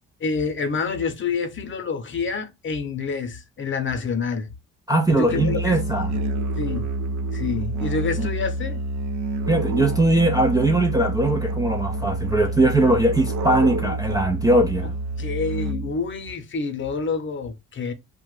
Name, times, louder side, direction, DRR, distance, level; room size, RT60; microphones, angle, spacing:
voice 1, 0.2-4.5 5.1-5.7 6.6-6.9 7.3-8.8 15.2-17.9, left 4 dB, 40° left, 0.8 m, -27 dB
voice 2, 4.9-6.2 8.2-8.3 9.5-14.9, right 1 dB, 15° right, 0.3 m, -20 dB
Musical instrument, 5.3-16.1, right 2 dB, 70° right, 0.5 m, -27 dB
2.8 x 2.2 x 3.1 m
cardioid pair, 90°, 30 cm